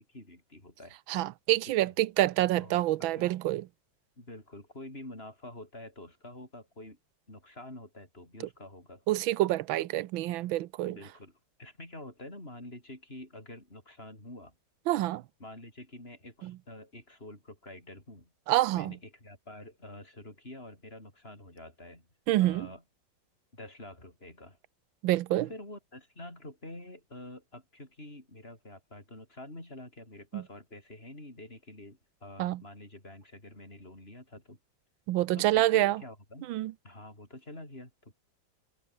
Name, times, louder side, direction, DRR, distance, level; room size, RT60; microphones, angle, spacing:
voice 1, 0.0-1.0 2.5-3.3 4.2-7.0 7.3-9.0 9.7-9.9 10.8-14.6 15.4-18.3 18.7-22.1 22.4-22.8 23.5-24.6 25.3-34.6 35.3-36.5 36.8-38.1, left 1 dB, 30° left, 7.5 m, -47 dB
voice 2, 1.1-3.6 9.1-11.0 14.9-15.2 16.4-16.5 18.5-18.9 22.3-22.7 25.0-25.5 30.3-30.4 32.4-32.6 35.1-36.0 36.5-36.7, right 15 dB, 85° right, 1.5 m, -27 dB
omnidirectional pair, 2.1 m